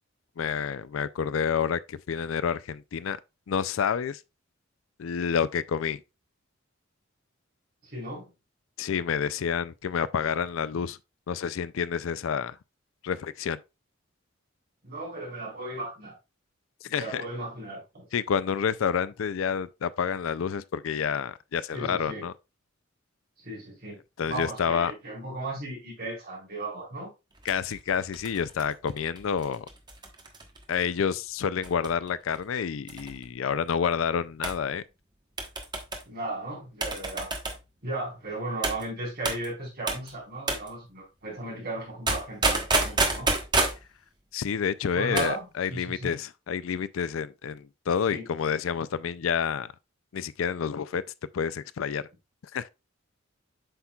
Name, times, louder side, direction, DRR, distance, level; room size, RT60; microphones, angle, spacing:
voice 1, 0.4-3.2 3.5-4.2 5.0-6.0 8.8-11.0 11.3-12.6 13.0-13.6 16.9-17.2 18.1-22.3 24.2-24.9 27.5-29.7 30.7-34.8 44.3-49.7 50.1-51.0 51.3-52.0 52.5-52.7, left 7 dB, 75° left, 0.4 m, -29 dB
voice 2, 7.8-8.3 14.8-16.2 16.9-18.1 21.7-22.3 23.4-27.1 36.1-37.3 37.8-43.3 44.9-46.1 48.1-48.3, right 2 dB, 50° right, 4.3 m, -36 dB
sound 1, 27.4-30.8 31.6-32.1 32.3-32.4 32.9-33.3 34.4-34.6 35.4-36.0 36.8-37.6 38.6-38.8 39.3-39.5 39.9-40.1 40.5-40.7 42.1-43.8 45.0-45.4 45.6-45.7, right 3 dB, 20° right, 1.2 m, -29 dB
8.0 x 5.8 x 2.3 m
head